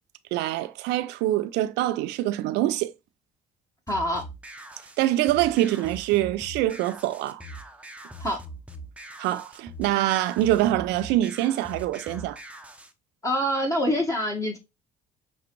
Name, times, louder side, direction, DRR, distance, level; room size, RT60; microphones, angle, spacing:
voice 1, 0.3-2.9 5.0-7.4 9.2-12.4, right 14 dB, 75° right, 0.4 m, -25 dB
voice 2, 3.9-4.3 8.2-8.4 13.2-14.6, equal, 20° left, 1.2 m, -25 dB
sound 1, 3.9-12.9, right 1 dB, 5° right, 0.7 m, -42 dB
6.0 x 2.4 x 2.9 m
supercardioid pair, 65°, 18 cm